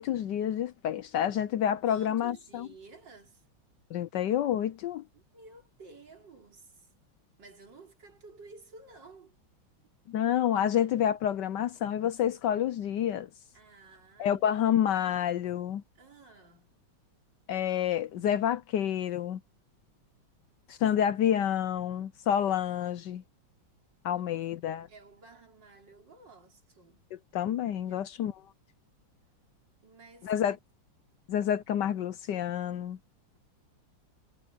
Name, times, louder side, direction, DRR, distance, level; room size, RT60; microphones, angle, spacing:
voice 1, 0.0-2.7 3.9-5.0 10.1-13.3 14.2-15.8 17.5-19.4 20.7-23.2 24.0-24.9 27.3-28.4 30.2-30.6 31.3-33.0, left 10 dB, 70° left, 1.2 m, -28 dB
voice 2, 1.8-3.4 5.1-6.9 7.4-9.4 13.5-14.6 16.0-16.7 24.1-24.5 24.9-27.1 27.9-28.4 29.8-30.3, right 3 dB, 60° right, 4.2 m, -53 dB
omnidirectional pair, 2.2 m